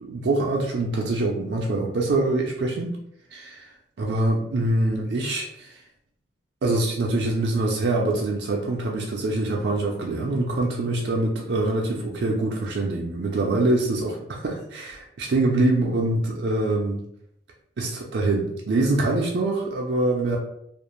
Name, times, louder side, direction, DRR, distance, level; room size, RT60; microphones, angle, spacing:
voice 1, 0.0-2.9 3.3-3.5 4.0-5.8 6.6-17.0 17.8-20.4, right 2 dB, 60° right, -1 dB, 0.4 m, -24 dB
2.4 x 2.0 x 2.9 m, 0.73 s
head